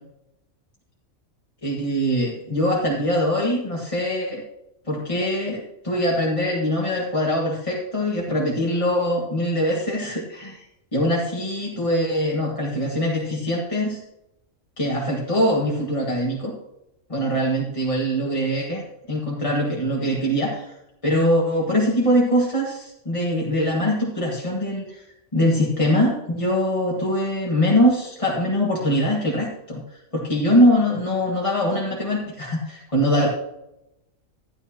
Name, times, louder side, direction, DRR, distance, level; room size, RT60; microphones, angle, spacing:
voice 1, 1.6-4.4 4.9-10.6 10.9-14.0 14.8-16.5 17.1-20.8 21.0-25.0 25.3-33.3, equal, 25° left, -3 dB, 1.6 m, -22 dB
13.0 x 12.0 x 2.9 m, 0.86 s
omnidirectional pair, 1.4 m